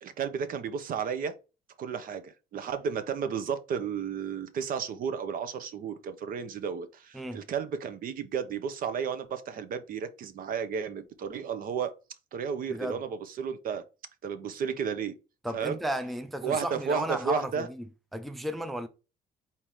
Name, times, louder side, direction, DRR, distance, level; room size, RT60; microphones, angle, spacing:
voice 1, 0.0-1.3 1.8-11.9 12.3-13.8 14.2-15.2 15.5-15.8 16.4-17.7, right 6 dB, 55° right, 0.8 m, -33 dB
voice 2, 12.7-13.0 15.4-17.8 18.1-18.9, right 1 dB, ahead, 0.4 m, -34 dB
4.3 x 3.6 x 3.1 m
cardioid pair, 110°, 17 cm